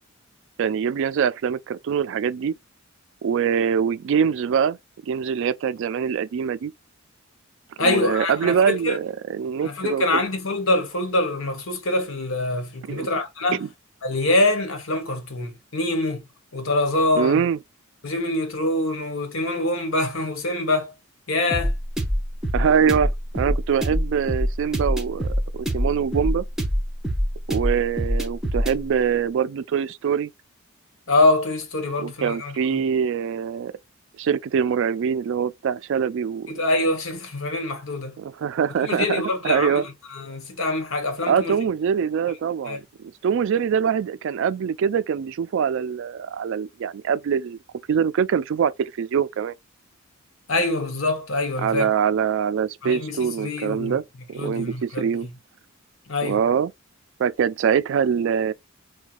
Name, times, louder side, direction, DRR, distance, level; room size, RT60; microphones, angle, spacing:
voice 1, 0.6-2.5 3.2-4.8 5.0-6.7 7.8-10.2 12.9-13.1 13.6-13.7 17.1-17.6 22.5-26.4 27.5-30.3 32.0-33.7 34.2-36.6 38.2-39.8 41.3-42.8 43.2-47.6 47.9-49.5 51.6-54.0 54.3-55.3 56.2-56.7 57.2-58.5, right 7 dB, 60° right, 0.3 m, -23 dB
voice 2, 7.8-9.0 9.6-13.6 14.0-16.2 16.5-17.5 18.0-20.9 21.3-21.7 31.1-32.8 36.5-38.2 38.8-41.6 42.7-42.8 50.5-51.9 52.8-54.0 54.4-55.3 56.1-56.4, left 2 dB, 70° left, 1.2 m, -24 dB
sound 1, 21.5-28.8, equal, 5° right, 0.8 m, -24 dB
4.6 x 2.2 x 2.4 m
head